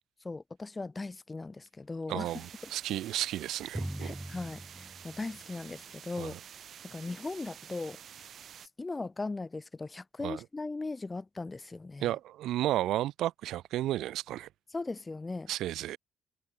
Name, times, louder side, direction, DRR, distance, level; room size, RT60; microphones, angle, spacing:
voice 1, 0.2-2.3 2.6-2.7 4.0-6.4 6.8-8.0 8.8-12.1 14.7-15.5, left 3 dB, 20° left, 1.2 m, -38 dB
voice 2, 2.1-4.2 6.2-6.4 10.2-10.4 12.0-14.5 15.5-16.0, right 14 dB, 85° right, 1.5 m, -33 dB
sound 1, 2.2-8.7, right 9 dB, 60° right, 5.5 m, -50 dB
Drum, 3.7-6.1, right 1 dB, 5° right, 3.4 m, -41 dB
cardioid pair, 90°, 0 cm